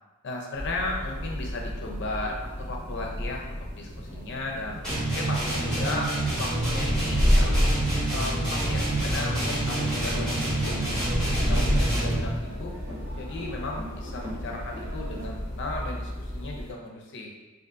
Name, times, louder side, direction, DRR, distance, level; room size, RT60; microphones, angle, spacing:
voice 1, 0.2-4.8 5.1-6.1 6.4-7.7 8.1-10.8 11.3-12.7 13.1-17.3, left 2 dB, 60° left, 0 dB, 0.5 m, -35 dB
sound 1, 0.5-16.7, equal, 20° left, 1.4 m, -30 dB
sound 2, 4.8-12.4, right 1 dB, 5° left, 1.3 m, -28 dB
sound 3, 9.7-15.2, equal, 50° right, 1.4 m, -42 dB
3.7 x 2.5 x 2.5 m, 1.2 s
head